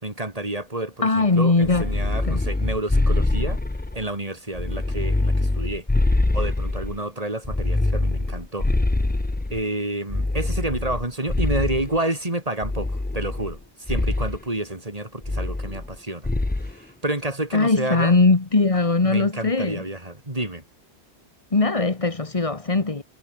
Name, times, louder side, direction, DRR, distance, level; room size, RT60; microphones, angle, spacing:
voice 1, 0.0-3.6 3.9-5.9 6.3-8.7 9.5-16.3 16.6-18.1 19.0-20.6, right 1 dB, 35° right, 3.7 m, -29 dB
voice 2, 1.0-1.9 2.2-2.4 17.5-19.8 21.5-23.0, left 3 dB, 30° left, 1.4 m, -20 dB
sound 1, 1.6-4.1 4.5-7.0 7.4-9.6 10.1-12.0 12.6-13.6 13.9-14.4 15.2-16.0 16.2-16.7, left 2 dB, 15° left, 0.4 m, -24 dB
omnidirectional pair, 1.1 m